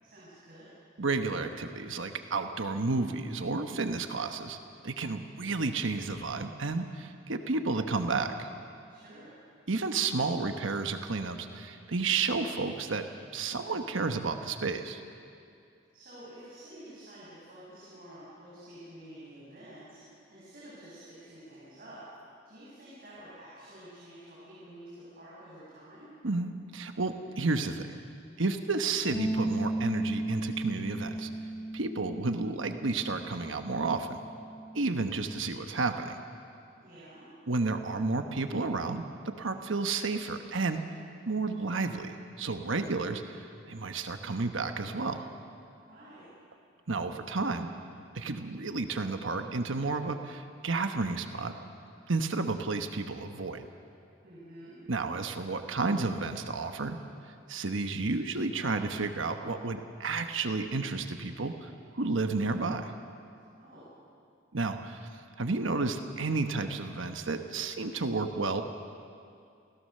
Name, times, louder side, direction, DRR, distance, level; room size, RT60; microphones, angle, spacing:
voice 1, 0.0-0.7 8.9-9.4 15.9-22.0 22.4-26.1 36.8-37.3 45.9-46.3 54.2-54.7 63.5-63.9, right 1 dB, 50° right, -8 dB, 6.6 m, -50 dB
voice 2, 1.0-4.6 4.8-8.5 9.7-13.1 13.3-15.0 26.2-27.9 28.4-31.3 31.7-34.2 34.7-36.2 37.5-40.8 41.3-45.3 46.9-47.7 48.1-51.5 52.1-53.7 54.9-57.0 57.5-62.9 64.5-65.1 65.4-68.6, right 3 dB, 75° right, 7 dB, 1.1 m, -31 dB
Bass guitar, 29.1-35.4, right 1 dB, 15° left, 1.3 m, -36 dB
28.0 x 16.5 x 6.7 m, 2.4 s
head